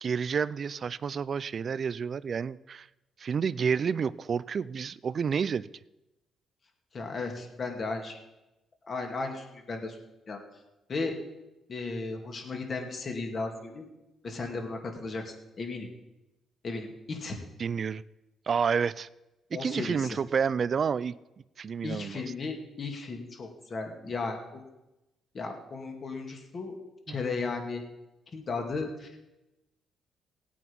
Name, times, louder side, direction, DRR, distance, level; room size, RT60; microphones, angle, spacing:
voice 1, 0.0-2.9 3.2-5.7 17.6-18.0 18.5-19.1 19.5-21.2 21.6-22.2, right 6 dB, 50° right, 0.4 m, -29 dB
voice 2, 6.9-8.2 8.9-10.0 10.3-10.4 10.9-11.2 11.7-13.9 14.2-15.9 16.6-17.4 19.5-20.2 21.8-24.6 25.3-26.8 27.1-27.8 28.3-29.1, left 3 dB, 45° left, 2.5 m, -35 dB
18.0 x 8.5 x 5.4 m
cardioid pair, 90°, 0 cm